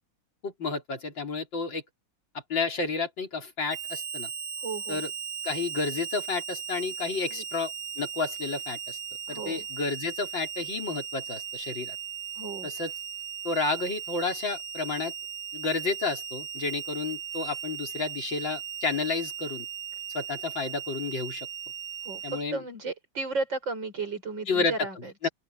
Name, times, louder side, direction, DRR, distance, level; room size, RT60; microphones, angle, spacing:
voice 1, 0.4-1.8 2.5-4.3 4.9-5.1 5.4-9.0 9.3-12.0 12.6-12.9 13.4-15.1 15.5-19.7 20.1-21.5 22.2-22.6 24.5-25.3, left 4 dB, 85° left, 4.5 m, -31 dB
Harmonica, 3.7-22.4, right 7 dB, 10° right, 2.6 m, -37 dB
voice 2, 4.6-5.0 7.3-7.4 9.3-9.7 12.4-12.7 22.0-25.1, right 3 dB, 80° right, 6.4 m, -34 dB
open air
omnidirectional pair, 2.0 m